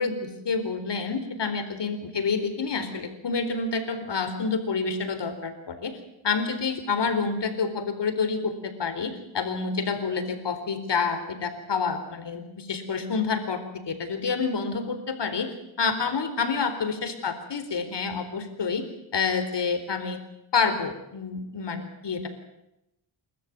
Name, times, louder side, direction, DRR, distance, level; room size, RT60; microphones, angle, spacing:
voice 1, 0.0-5.9 6.2-13.6 13.9-18.8 19.1-20.2 20.5-22.3, left 5 dB, 55° left, 8 dB, 4.2 m, -28 dB
29.0 x 13.5 x 9.5 m, 0.88 s
cardioid pair, 80°, 49 cm